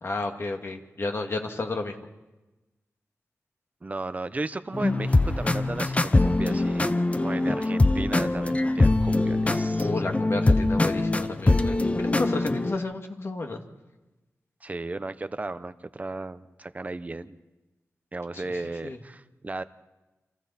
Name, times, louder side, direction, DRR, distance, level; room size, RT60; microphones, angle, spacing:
voice 1, 0.0-2.0 9.8-13.6 18.8-19.0, left 3 dB, 50° left, 3 dB, 2.1 m, -31 dB
voice 2, 3.8-6.9 7.2-9.9 14.6-17.4 18.1-19.6, right 2 dB, 30° right, 12 dB, 0.9 m, -35 dB
sound 1, 4.7-12.8, left 2 dB, 25° left, 0.8 m, -23 dB
29.5 x 26.5 x 4.3 m, 1.1 s
wide cardioid pair, 110°, 5 cm